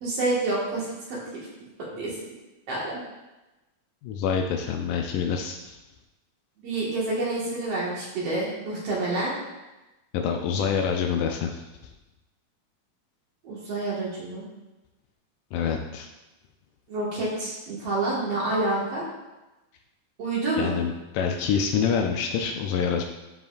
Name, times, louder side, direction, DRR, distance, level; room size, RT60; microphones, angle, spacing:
voice 1, 0.0-2.1 2.7-3.0 6.6-9.3 13.4-14.5 16.9-19.0 20.2-20.8, right 2 dB, 55° right, -6 dB, 2.7 m, -28 dB
voice 2, 4.0-5.8 10.1-11.6 15.5-16.1 20.6-23.0, left 7 dB, 85° left, 2 dB, 2.1 m, -26 dB
12.5 x 4.7 x 2.6 m, 1.0 s
omnidirectional pair, 3.7 m